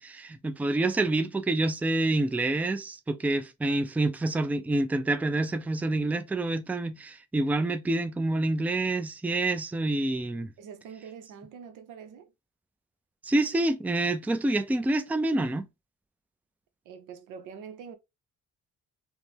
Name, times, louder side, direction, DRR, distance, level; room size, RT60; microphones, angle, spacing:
voice 1, 0.0-10.5 13.2-15.6, right 2 dB, 5° right, 0.4 m, -27 dB
voice 2, 10.6-12.3 16.8-18.0, right 7 dB, 90° right, 0.7 m, -44 dB
3.5 x 2.1 x 2.7 m
cardioid pair, 90°, 30 cm